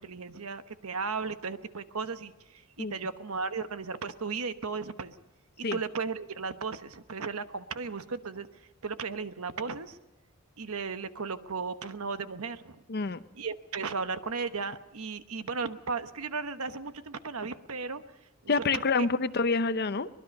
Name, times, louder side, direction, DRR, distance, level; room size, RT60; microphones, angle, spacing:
voice 1, 0.0-5.2 5.6-10.0 10.6-12.8 13.3-19.1, right 4 dB, 75° right, 10 dB, 1.1 m, -36 dB
voice 2, 12.9-13.2 18.5-20.1, left 4 dB, 45° left, 13 dB, 0.7 m, -27 dB
23.5 x 20.5 x 5.4 m, 0.98 s
head